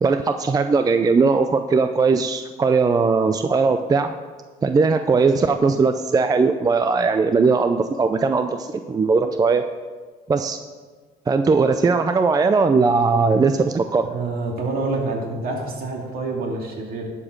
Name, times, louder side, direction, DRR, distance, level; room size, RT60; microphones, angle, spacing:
voice 1, 0.0-4.1 4.6-9.6 10.3-10.6 11.3-14.1, right 4 dB, 20° right, 8 dB, 0.4 m, -19 dB
voice 2, 14.0-17.1, right 3 dB, 60° right, 0 dB, 2.4 m, -27 dB
11.0 x 5.0 x 6.5 m, 1.4 s
cardioid pair, 110°, 17 cm